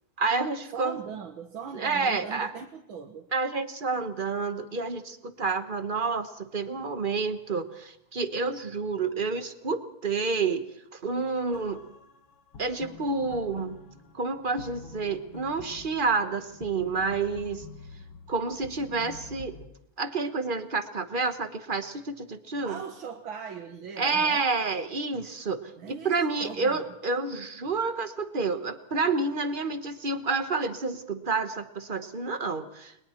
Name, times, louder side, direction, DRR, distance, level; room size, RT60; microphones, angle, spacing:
voice 1, 0.2-1.0 1.7-2.5 3.3-10.6 10.9-11.8 12.6-13.8 14.1-17.6 18.3-19.6 20.0-22.8 24.0-32.9, right 4 dB, 35° right, 9 dB, 0.8 m, -29 dB
voice 2, 0.7-3.3 22.6-24.4 25.8-26.9, right 6 dB, 65° right, 2 dB, 2.1 m, -40 dB
sound 1, 11.5-19.7, left 4 dB, 85° left, 2.5 m, -47 dB
30.0 x 21.5 x 4.5 m, 0.77 s
omnidirectional pair, 2.4 m